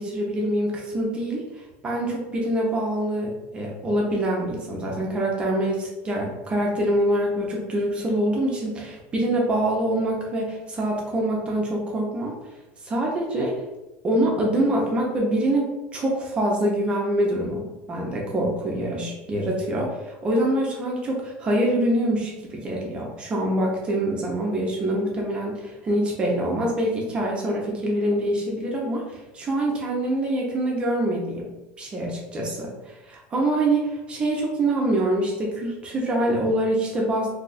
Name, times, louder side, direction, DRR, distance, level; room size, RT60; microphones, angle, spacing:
voice 1, 0.0-12.3 12.8-13.5 14.0-31.5 31.8-37.3, right 1 dB, 20° right, -2 dB, 0.5 m, -25 dB
2.7 x 2.3 x 3.9 m, 1.0 s
cardioid pair, 165°, 6 cm